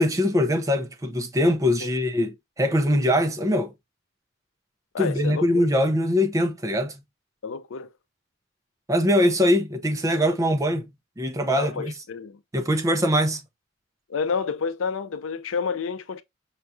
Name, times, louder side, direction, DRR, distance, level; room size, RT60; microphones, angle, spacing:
voice 1, 0.0-3.7 5.0-7.0 8.9-10.9 11.2-11.9 12.5-13.4, left 1 dB, 15° right, 0.5 m, -22 dB
voice 2, 4.9-5.7 7.4-7.9 11.5-12.4 14.1-16.2, left 5 dB, 80° left, 0.5 m, -29 dB
5.7 x 2.3 x 2.5 m
head